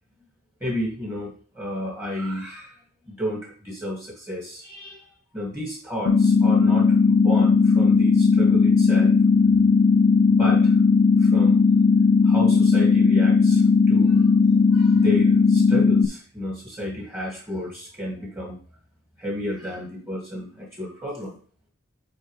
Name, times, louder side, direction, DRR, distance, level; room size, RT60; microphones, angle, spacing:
voice 1, 0.6-2.7 3.1-9.1 10.3-10.8 11.2-11.6 12.2-18.6 19.2-21.4, equal, 10° right, -2 dB, 2.0 m, -32 dB
sound 1, 6.1-16.1, left 5 dB, 75° left, 0.4 m, -17 dB
8.7 x 4.6 x 3.2 m, 0.42 s
head